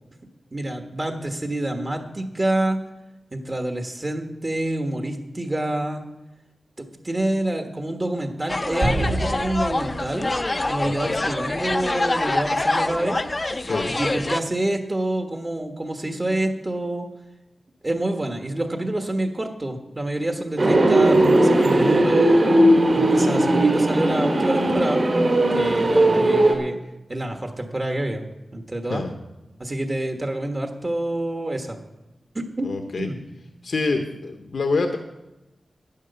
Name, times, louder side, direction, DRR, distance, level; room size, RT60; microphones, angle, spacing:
voice 1, 0.5-2.8 3.3-6.0 6.8-10.3 10.7-13.2 13.8-17.1 17.8-22.5 22.9-25.0 25.5-26.8 27.1-29.1 29.6-31.8 32.3-32.7 33.0-33.2, right 1 dB, 30° right, 4 dB, 1.4 m, -27 dB
sound 1, 8.5-14.4, left 2 dB, 30° left, 0.6 m, -25 dB
sound 2, 8.8-11.3, right 1 dB, 75° right, 4.3 m, -29 dB
voice 2, 10.8-11.2 13.6-13.9 28.9-29.1 32.6-33.1 33.6-35.0, left 3 dB, 75° left, 5 dB, 1.0 m, -26 dB
sound 3, 20.6-26.5, right 1 dB, 55° right, 2.7 m, -18 dB
11.0 x 9.3 x 6.8 m, 1.0 s
wide cardioid pair, 80°, 0 cm